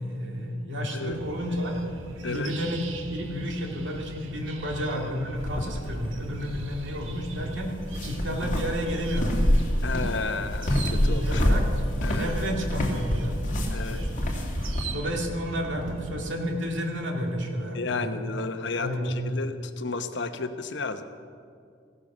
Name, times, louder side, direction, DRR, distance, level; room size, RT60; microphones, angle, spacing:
voice 1, 0.0-1.7 2.3-7.8 8.0-9.5 10.9-11.7 12.1-13.4 13.7-14.1 14.9-18.2 18.8-19.2, equal, 65° right, 1 dB, 2.6 m, -31 dB
sound 1, 1.1-16.3, right 2 dB, 85° right, 1.5 m, -41 dB
sound 2, 5.4-14.9, equal, 40° left, 2.5 m, -27 dB
voice 2, 9.8-11.4 12.0-12.3 13.7-14.0 17.7-21.0, left 4 dB, 65° left, 9 dB, 1.0 m, -32 dB
16.5 x 13.5 x 6.2 m, 2.2 s
head